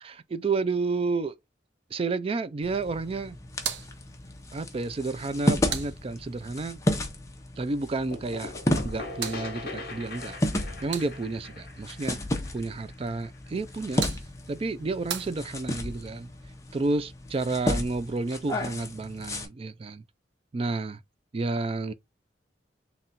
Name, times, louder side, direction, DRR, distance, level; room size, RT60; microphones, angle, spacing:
voice 1, 0.0-1.4 1.9-3.4 4.5-6.8 7.6-8.5 8.8-10.4 10.8-12.2 12.5-14.1 14.5-16.3 16.7-20.0 20.5-21.0 21.3-21.9, right 3 dB, 30° right, 0.3 m, -30 dB
sound 1, 2.6-19.5, left 1 dB, 15° left, 0.7 m, -33 dB
sound 2, 3.5-6.6 8.6-11.5 13.5-16.0, right 8 dB, 85° right, 0.7 m, -40 dB
sound 3, 8.1-13.7, left 3 dB, 55° left, 1.1 m, -41 dB
3.8 x 2.3 x 4.1 m
head